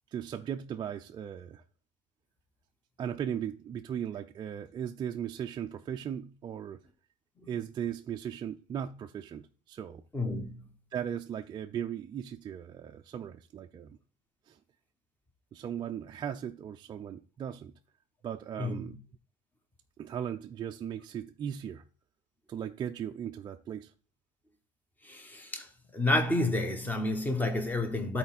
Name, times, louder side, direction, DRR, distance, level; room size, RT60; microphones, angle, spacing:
voice 1, 0.1-1.6 3.0-6.8 7.5-10.0 10.9-14.0 14.5-14.6 15.5-17.7 18.2-19.0 20.0-21.8 22.5-23.9, right 9 dB, 25° right, 0.4 m, -37 dB
voice 2, 10.1-10.7 18.6-19.0 25.0-25.7 25.9-28.2, left 2 dB, 10° left, 1.1 m, -30 dB
12.5 x 4.4 x 4.1 m
cardioid pair, 150°, 17 cm